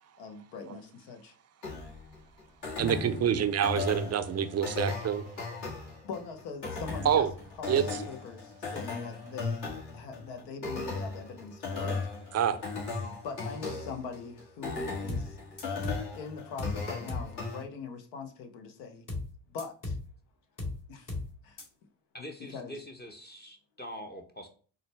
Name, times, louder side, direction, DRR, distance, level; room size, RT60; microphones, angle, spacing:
voice 1, 0.2-1.3 6.0-7.3 7.6-9.7 9.9-12.0 13.2-15.4 16.1-19.0 19.5-20.0 20.9-21.1 21.4-21.6 22.5-22.8, left 5 dB, 80° left, 0.8 m, -42 dB
sound 1, 1.6-17.6, left 3 dB, 60° left, 1.7 m, -37 dB
voice 2, 2.8-5.3 7.0-7.3 7.7-7.9 12.3-12.6, right 8 dB, 35° right, 0.4 m, -27 dB
sound 2, 15.1-15.3 15.6-16.1 16.6-16.8 17.1-17.3 19.1-19.3 19.6-20.1 20.6-20.8 21.1-21.3 21.6-21.7, left 2 dB, 45° left, 1.4 m, -35 dB
voice 3, 22.1-24.5, equal, 20° left, 0.7 m, -44 dB
3.8 x 2.2 x 3.2 m
hypercardioid pair, 60°, 46 cm